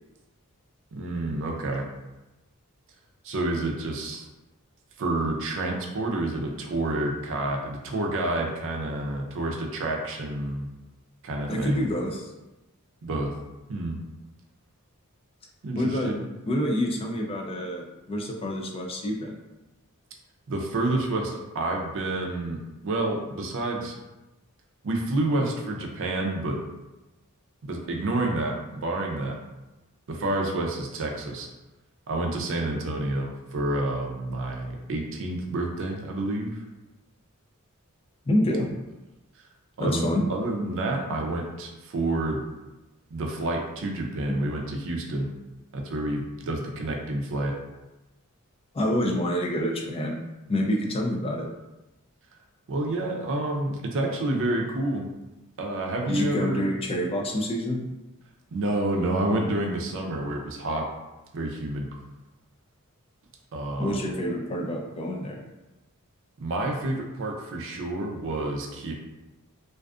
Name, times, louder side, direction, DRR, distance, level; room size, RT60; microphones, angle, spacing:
voice 1, 0.9-1.9 3.2-4.3 5.0-10.7 11.2-11.8 13.0-13.3 13.7-14.0 15.6-16.2 20.5-24.0 24.8-26.6 27.6-29.4 30.1-31.5 32.1-36.6 39.8-42.4 43.1-45.3 45.7-47.5 52.7-55.1 55.6-56.7 58.5-60.9 61.3-61.9 63.5-64.0 66.4-68.9, right 2 dB, 60° right, 1 dB, 0.5 m, -29 dB
voice 2, 11.5-12.3 15.8-16.1 16.5-19.4 38.3-38.7 39.8-40.2 41.1-41.2 44.3-44.4 48.7-50.2 50.5-51.5 56.1-57.9 63.8-65.4, left 1 dB, 25° left, 0 dB, 0.4 m, -27 dB
2.4 x 2.3 x 2.3 m, 1.0 s
head